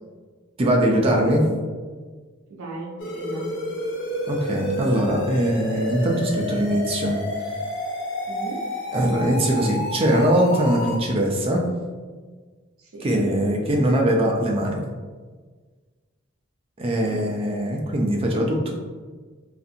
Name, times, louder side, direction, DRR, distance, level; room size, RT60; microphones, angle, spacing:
voice 1, 0.6-1.5 4.3-7.2 8.9-11.6 13.0-14.8 16.8-18.7, right 1 dB, 25° right, 0 dB, 0.4 m, -21 dB
voice 2, 2.5-3.5 8.3-8.6 12.8-13.3 17.0-17.3, right 1 dB, 80° right, -1 dB, 0.5 m, -35 dB
sound 1, 3.0-11.0, left 1 dB, 60° left, 0.5 m, -30 dB
2.5 x 2.4 x 2.7 m, 1.5 s
head